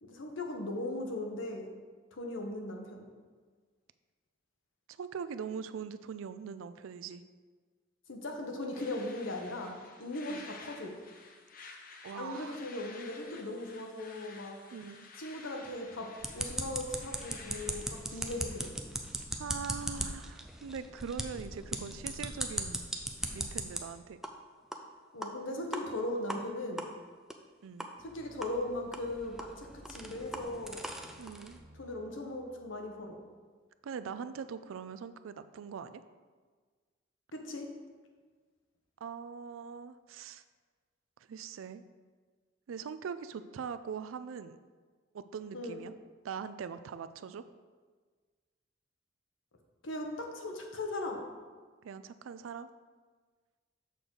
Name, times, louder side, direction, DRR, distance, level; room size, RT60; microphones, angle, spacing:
voice 1, 0.0-1.7 2.1-3.1 8.1-9.7 10.0-10.9 12.2-14.6 15.2-16.1 16.3-18.7 25.1-26.9 28.0-30.8 31.8-33.2 37.3-37.7 45.5-45.8 49.8-51.2, left 1 dB, 80° left, 2 dB, 1.0 m, -38 dB
voice 2, 4.9-7.2 10.3-10.5 12.0-12.6 14.7-15.1 18.1-18.3 19.4-22.8 23.3-24.2 27.6-27.9 31.2-31.6 33.8-36.0 39.0-40.4 41.3-41.8 42.7-44.6 45.1-45.9 46.2-47.4 51.8-52.7, right 6 dB, 90° right, 12 dB, 0.4 m, -42 dB
sound 1, 8.7-18.7, left 4 dB, 45° left, 0.7 m, -52 dB
sound 2, 16.2-23.8 24.2-24.3 24.7-24.8 25.2-25.3 25.7-25.8 26.3-26.4 26.8-26.9 27.3-27.4 27.8-27.9 28.4-28.5 28.9-31.6, right 1 dB, ahead, 0.4 m, -39 dB
sound 3, 28.0-33.3, equal, 35° right, 0.9 m, -58 dB
6.7 x 3.8 x 6.2 m, 1.5 s
head